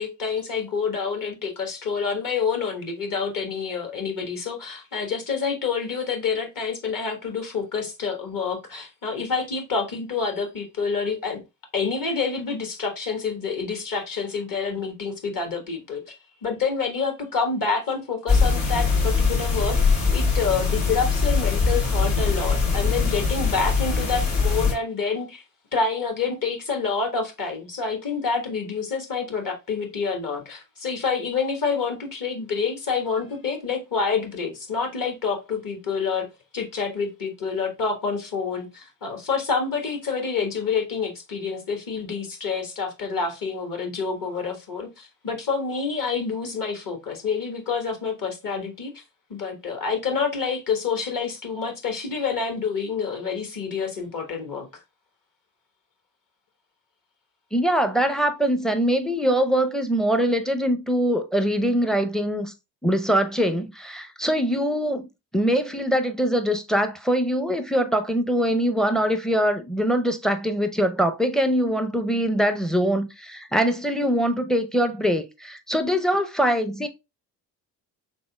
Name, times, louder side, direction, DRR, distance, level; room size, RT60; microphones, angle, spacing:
voice 1, 0.0-11.4 11.7-16.1 16.4-19.8 20.1-25.4 25.7-36.3 36.5-48.9 49.3-54.7, left 5 dB, 40° left, 1.2 m, -27 dB
sound 1, 18.3-24.7, left 4 dB, 60° left, 1.7 m, -22 dB
voice 2, 57.5-62.5 62.8-65.1 65.3-76.9, equal, ahead, 0.5 m, -23 dB
4.2 x 3.4 x 2.2 m
hypercardioid pair, 45°, 49 cm